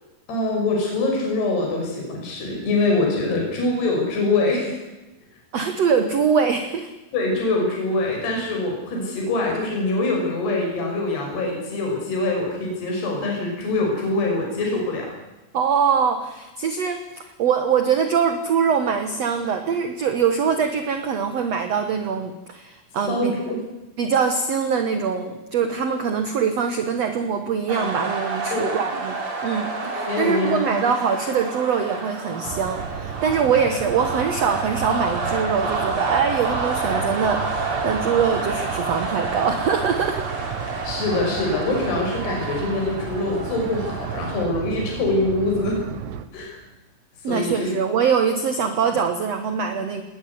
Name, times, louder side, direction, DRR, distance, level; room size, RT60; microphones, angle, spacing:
voice 1, 0.3-4.8 7.1-15.1 23.1-23.6 28.5-29.0 29.9-30.9 40.8-45.8 46.3-46.6 47.3-47.7, left 2 dB, 65° left, 0 dB, 7.8 m, -24 dB
voice 2, 5.5-6.9 15.5-23.3 24.0-29.1 29.4-40.3 47.2-50.0, right 6 dB, 60° right, 7 dB, 1.8 m, -23 dB
sound 1, 27.7-44.5, right 3 dB, 35° right, 3.8 m, -29 dB
sound 2, 32.4-46.3, right 9 dB, 80° right, 3.5 m, -34 dB
20.5 x 19.5 x 9.6 m, 1.0 s
omnidirectional pair, 5.0 m